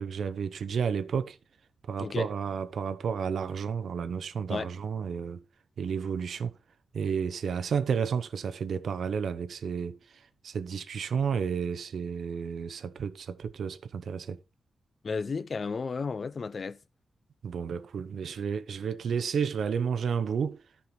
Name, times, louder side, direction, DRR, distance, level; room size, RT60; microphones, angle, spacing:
voice 1, 0.0-1.4 1.8-5.4 5.8-6.5 6.9-14.4 17.4-20.6, right 6 dB, 75° right, 0.8 m, -31 dB
voice 2, 2.0-2.3 4.5-4.7 15.0-16.8, left 4 dB, 45° left, 0.6 m, -33 dB
13.5 x 5.6 x 4.4 m
wide cardioid pair, 115°, 0 cm